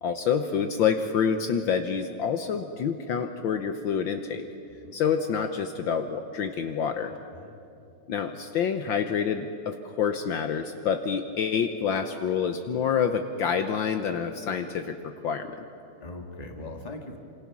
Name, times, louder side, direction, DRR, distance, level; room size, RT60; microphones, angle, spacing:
voice 1, 0.0-4.4 4.9-7.1 8.1-15.5, left 7 dB, 65° left, 7 dB, 1.6 m, -27 dB
voice 2, 4.7-5.0 7.3-7.6 16.0-17.2, left 2 dB, 20° left, 3 dB, 1.9 m, -40 dB
27.5 x 27.0 x 6.1 m, 2.6 s
omnidirectional pair, 2.4 m